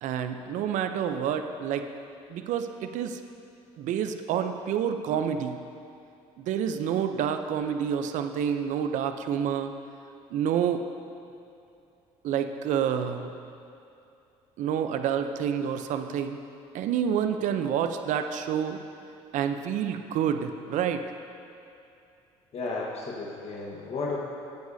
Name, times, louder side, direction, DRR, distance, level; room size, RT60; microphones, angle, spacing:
voice 1, 0.0-1.9 2.3-3.2 3.8-5.6 6.4-9.7 10.3-10.8 12.2-13.3 14.6-16.4 16.7-18.8 19.3-21.0, right 8 dB, 65° right, 8 dB, 0.6 m, -28 dB
voice 2, 22.5-24.2, left 3 dB, 50° left, -3 dB, 1.4 m, -33 dB
14.5 x 9.4 x 2.7 m, 2.7 s
supercardioid pair, 75°, 14 cm